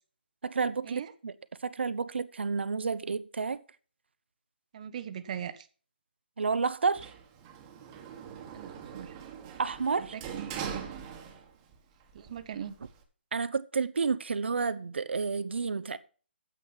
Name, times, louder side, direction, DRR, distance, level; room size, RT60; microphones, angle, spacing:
voice 1, 0.4-1.3 1.6-3.6 6.4-7.1 9.6-10.1 13.3-16.0, right 5 dB, 75° right, 0.8 m, -30 dB
voice 2, 4.7-5.7 8.5-9.1 10.1-10.2 10.5-10.8 12.1-12.7, right 9 dB, 40° right, 0.9 m, -40 dB
Sliding door, 6.9-11.8 12.1-13.0, right 7 dB, 20° right, 1.5 m, -42 dB
9.3 x 7.7 x 5.7 m
hypercardioid pair, 155°, 6 cm